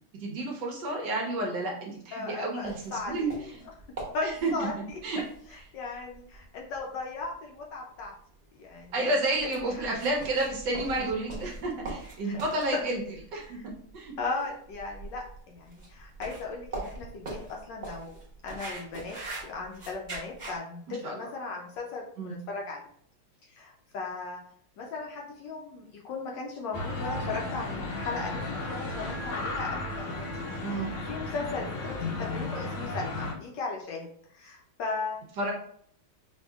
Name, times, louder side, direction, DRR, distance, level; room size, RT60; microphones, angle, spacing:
voice 1, 0.2-3.3 4.2-4.5 5.0-5.2 8.9-13.0 13.3-13.6 13.9-14.1 20.9-21.2 22.2-22.4 30.6-30.9 35.4-35.5, right 2 dB, 70° right, 0 dB, 1.1 m, -30 dB
voice 2, 2.1-3.5 3.9-5.2 5.7-8.1 8.5-9.1 9.4-9.8 11.0-11.1 12.2-12.4 12.7-12.8 13.5-13.6 14.2-18.2 18.4-19.2 19.4-22.8 23.4-24.4 24.8-30.3 30.7-35.2, left 3 dB, 70° left, 0 dB, 1.1 m, -37 dB
sound 1, 2.6-20.6, right 2 dB, 40° right, 0.7 m, -43 dB
sound 2, 26.7-33.3, left 2 dB, 90° left, 1.6 m, -34 dB
5.3 x 2.7 x 2.3 m, 0.63 s
omnidirectional pair, 2.3 m